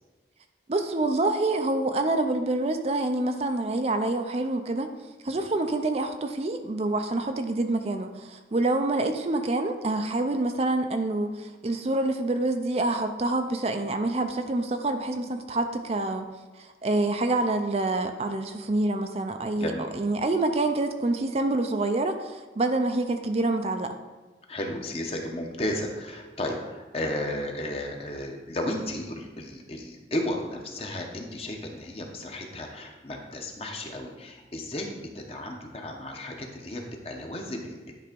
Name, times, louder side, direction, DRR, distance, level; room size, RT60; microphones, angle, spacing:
voice 1, 0.7-4.9 5.2-16.3 16.6-23.9, right 2 dB, 35° right, 6 dB, 0.5 m, -27 dB
voice 2, 19.5-19.9 24.5-37.9, left 1 dB, 35° left, 2 dB, 1.0 m, -34 dB
10.5 x 3.5 x 5.1 m, 1.2 s
head